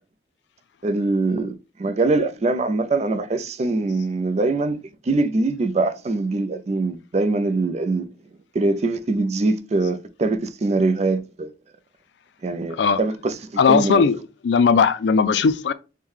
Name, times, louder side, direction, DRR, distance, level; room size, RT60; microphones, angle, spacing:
voice 1, 0.8-1.5 1.8-4.8 5.1-8.0 8.5-11.5 12.4-13.3 13.7-14.0, right 2 dB, 35° right, 0.4 m, -22 dB
voice 2, 13.6-14.2 14.4-15.7, left 5 dB, 75° left, 0.4 m, -18 dB
5.4 x 2.2 x 3.1 m
head